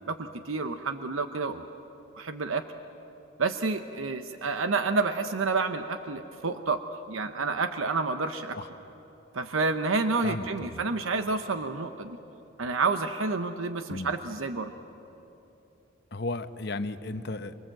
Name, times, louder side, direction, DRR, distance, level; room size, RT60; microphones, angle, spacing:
voice 1, 0.1-1.7 2.1-2.6 3.4-6.8 7.1-8.6 9.3-12.2 12.6-14.7, right 3 dB, 85° right, 8 dB, 0.9 m, -29 dB
voice 2, 10.2-10.8 13.9-14.1 16.1-17.6, left 2 dB, 55° left, 10 dB, 0.9 m, -34 dB
24.5 x 24.5 x 7.8 m, 3.0 s
head